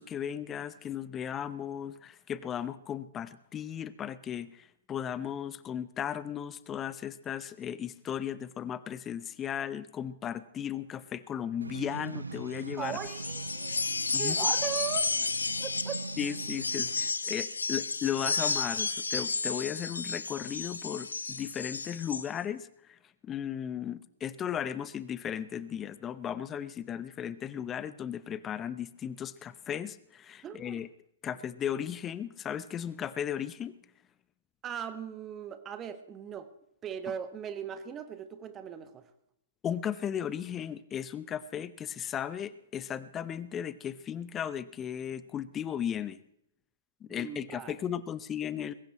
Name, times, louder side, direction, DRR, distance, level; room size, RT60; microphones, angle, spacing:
voice 1, 0.0-13.0 14.1-14.4 16.2-30.9 31.2-33.7 39.6-46.2 47.0-48.7, left 9 dB, 20° left, 0.8 m, -36 dB
sound 1, 11.6-17.1, right 3 dB, 80° right, 0.5 m, -41 dB
voice 2, 12.8-13.8 14.2-15.3 15.6-16.0 30.4-30.8 34.6-36.5 36.8-39.1 47.1-47.7, right 8 dB, 20° right, 1.4 m, -38 dB
sound 2, 12.9-22.3, left 4 dB, 80° left, 0.7 m, -32 dB
21.0 x 17.0 x 3.1 m
figure-of-eight pair, 115°, 0 cm